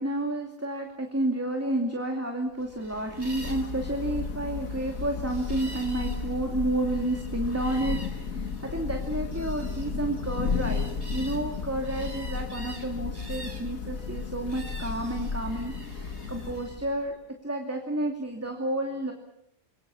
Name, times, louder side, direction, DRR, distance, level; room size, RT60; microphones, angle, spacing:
voice 1, 0.0-17.2 17.4-19.1, right 1 dB, 10° right, 2 dB, 2.6 m, -31 dB
sound 1, 2.6-16.8, right 1 dB, 45° right, 4.4 m, -47 dB
Thunder / Rain, 2.8-17.1, left 5 dB, 80° left, 1.9 m, -34 dB
28.0 x 22.5 x 7.1 m, 0.80 s
omnidirectional pair, 1.4 m